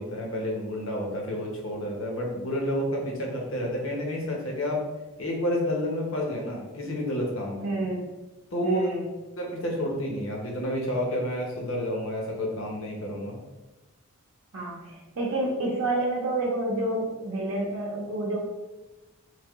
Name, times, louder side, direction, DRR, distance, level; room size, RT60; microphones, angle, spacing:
voice 1, 0.0-4.8 5.2-7.7 8.5-8.9 9.4-13.4, equal, 60° left, -1 dB, 0.9 m, -30 dB
voice 2, 7.6-8.0 8.6-9.1 14.5-18.4, right 2 dB, 65° right, -3 dB, 0.6 m, -29 dB
3.4 x 2.8 x 3.5 m, 1.1 s
head